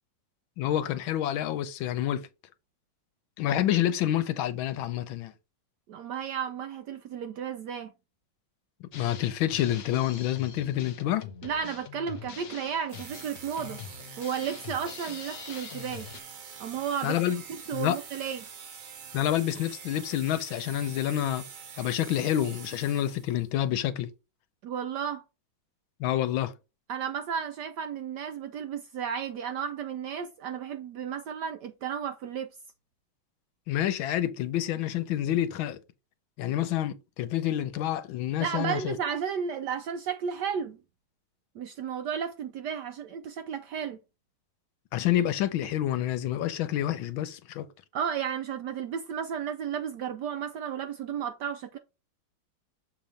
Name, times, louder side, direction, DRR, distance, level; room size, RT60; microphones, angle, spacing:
voice 1, 0.6-2.3 3.4-5.3 8.8-11.3 17.0-17.4 17.7-18.0 19.1-21.4 21.8-24.1 26.0-26.5 33.7-35.8 36.4-39.0 44.9-47.7, left 12 dB, 80° left, 1.4 m, -28 dB
voice 2, 5.9-7.9 11.4-13.8 14.2-16.1 16.6-17.2 17.7-18.4 24.6-25.2 26.9-32.5 38.4-40.8 41.6-44.0 47.9-51.8, right 7 dB, 75° right, 1.0 m, -33 dB
Drum kit, 8.9-16.2, left 7 dB, 60° left, 1.0 m, -44 dB
sound 1, 12.9-23.4, right 7 dB, 50° right, 1.1 m, -45 dB
6.9 x 2.9 x 5.0 m
omnidirectional pair, 2.3 m